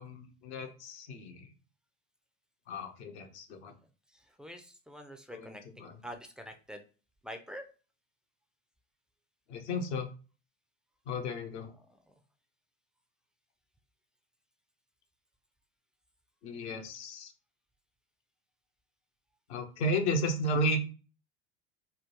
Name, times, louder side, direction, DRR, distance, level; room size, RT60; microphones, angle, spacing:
voice 1, 0.0-1.5 2.7-3.7 5.3-6.0 9.5-10.1 11.1-11.7 16.4-17.3 19.5-20.8, equal, 65° left, 4 dB, 0.9 m, -33 dB
voice 2, 4.4-6.8 7.2-7.6, equal, ahead, 4 dB, 0.4 m, -45 dB
3.6 x 2.2 x 2.9 m, 0.35 s
figure-of-eight pair, 75°, 37 cm